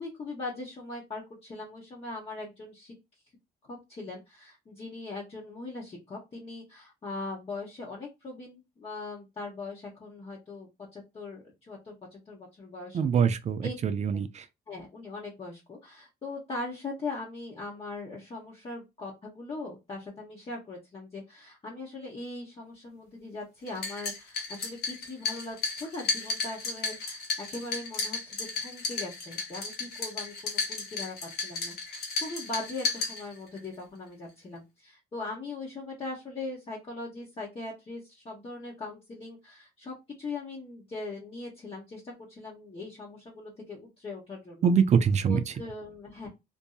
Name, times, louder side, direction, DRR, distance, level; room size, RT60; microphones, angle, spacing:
voice 1, 0.0-2.9 3.6-13.2 13.6-13.7 14.1-14.2 14.7-44.7 45.3-46.3, left 3 dB, 35° left, 1.0 m, -40 dB
voice 2, 12.9-14.4 44.6-45.5, right 6 dB, 40° right, 0.4 m, -24 dB
sound 1, 23.7-33.7, left 4 dB, 65° left, 1.1 m, -34 dB
2.6 x 2.6 x 2.3 m
cardioid pair, 110°, 17 cm